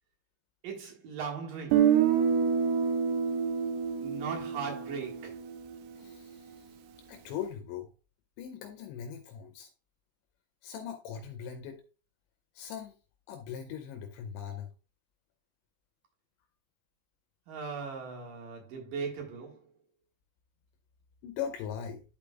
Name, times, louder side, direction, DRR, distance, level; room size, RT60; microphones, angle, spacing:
voice 1, 0.6-2.0 4.0-5.4 17.5-19.6, right 5 dB, 60° right, 2.8 m, -38 dB
Guitar, 1.7-5.7, right 7 dB, 80° right, 2.6 m, -27 dB
voice 2, 6.0-6.5 7.1-7.9 8.4-9.7 10.6-11.8 12.6-12.9 13.3-14.7 21.2-22.0, left 8 dB, 80° left, 2.9 m, -40 dB
11.5 x 5.1 x 2.4 m
omnidirectional pair, 5.4 m